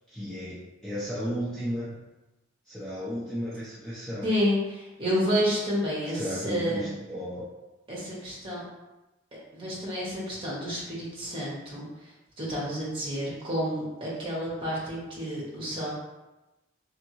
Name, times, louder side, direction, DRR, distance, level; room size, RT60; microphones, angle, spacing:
voice 1, 0.1-2.0 2.7-4.2 6.1-7.5, equal, 5° left, -10 dB, 0.7 m, -34 dB
voice 2, 4.2-6.9 7.9-8.6 9.5-15.9, equal, 25° right, -6 dB, 1.4 m, -30 dB
3.6 x 3.6 x 3.1 m, 1.0 s
head